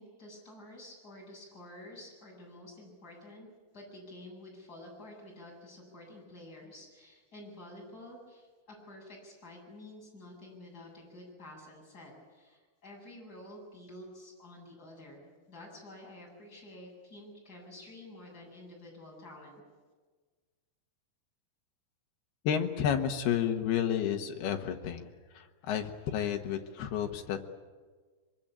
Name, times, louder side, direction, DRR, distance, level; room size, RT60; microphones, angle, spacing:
voice 1, 0.0-3.5 3.7-19.6, left 1 dB, 20° left, -2 dB, 8.2 m, -50 dB
voice 2, 22.4-25.1 25.3-27.4, left 9 dB, 65° left, 5 dB, 2.9 m, -31 dB
24.5 x 23.0 x 8.8 m, 1.4 s
omnidirectional pair, 5.6 m